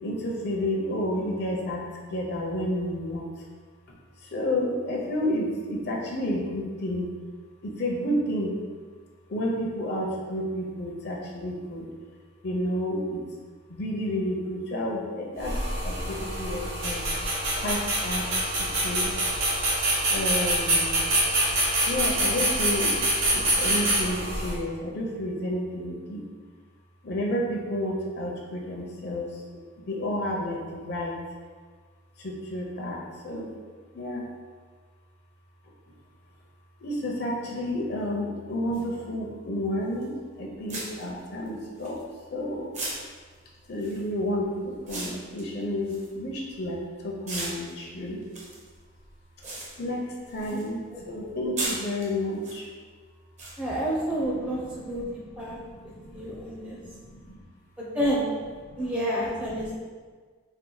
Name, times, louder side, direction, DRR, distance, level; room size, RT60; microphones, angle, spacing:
voice 1, 0.0-3.3 3.9-4.0 4.2-7.1 7.6-8.5 9.3-11.9 12.4-13.2 13.7-15.6 15.8-17.0 17.6-18.3 18.6-19.1 20.1-21.1 21.8-23.0 23.3-26.2 27.0-29.4 29.8-31.2 32.2-33.5 33.9-34.2 36.8-42.0 42.3-42.7 43.7-48.2 49.8-50.0 50.3-52.7 54.1-56.5 56.8-57.4 58.6-58.8 59.5-59.8, left 1 dB, 55° left, -2 dB, 0.7 m, -31 dB
sound 1, 15.4-24.5, right 1 dB, 75° right, 1.1 m, -25 dB
sound 2, 38.7-38.8 40.0-40.2 40.7-42.4 42.7-46.8 47.2-50.7 51.0-52.6 53.4-53.5, right 2 dB, 35° right, 0.8 m, -37 dB
voice 2, 53.6-55.0 55.4-55.6 56.1-56.8 57.8-58.2 58.8-59.8, equal, 5° right, -5 dB, 0.6 m, -29 dB
4.4 x 2.2 x 3.9 m, 1.5 s
head